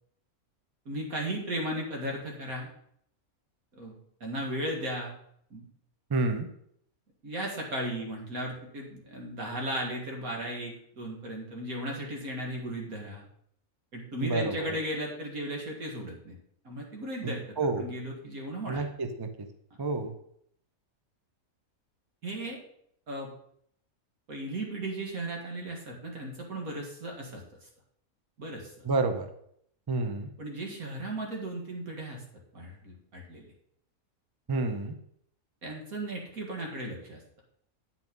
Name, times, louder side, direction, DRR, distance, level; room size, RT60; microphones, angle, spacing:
voice 1, 0.9-2.7 3.7-3.9 4.2-5.1 5.5-5.6 7.2-13.2 13.9-16.4 16.6-18.8 22.2-22.6 23.1-23.3 24.3-27.7 28.4-28.7 30.4-32.2 32.5-33.5 35.6-37.2, right 1 dB, 80° right, 0 dB, 2.4 m, -36 dB
voice 2, 6.1-6.5 14.2-14.8 17.2-17.9 18.7-19.5 19.8-20.1 28.8-29.3 29.9-30.3 34.5-34.9, right 3 dB, 25° right, 7 dB, 0.5 m, -29 dB
8.9 x 6.0 x 5.3 m, 0.69 s
omnidirectional pair, 1.5 m